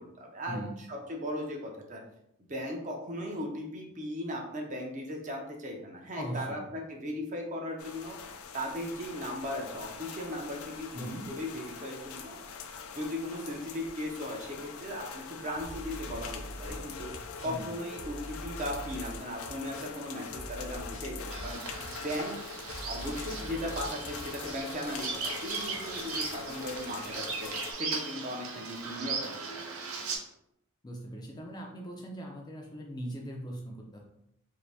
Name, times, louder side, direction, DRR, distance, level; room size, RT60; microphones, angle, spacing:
voice 1, 0.0-0.6 0.9-2.0 2.5-8.2 8.5-12.4 12.9-17.1 17.4-21.6 22.0-22.4 22.9-25.1 25.4-27.5 27.8-29.3, equal, 35° right, 0 dB, 0.5 m, -37 dB
voice 2, 6.1-6.6 10.9-11.3 17.4-17.7 30.8-34.0, right 1 dB, 20° left, -1 dB, 0.4 m, -40 dB
sound 1, 7.8-27.7, left 6 dB, 85° left, 0.4 m, -43 dB
sound 2, 15.6-17.7 18.0-20.1 20.3-22.4 22.7-25.0, equal, 70° left, 0.8 m, -44 dB
Bird vocalization bird call bird song, 21.3-30.2, right 4 dB, 85° right, 0.6 m, -38 dB
2.7 x 2.6 x 3.2 m, 0.77 s
head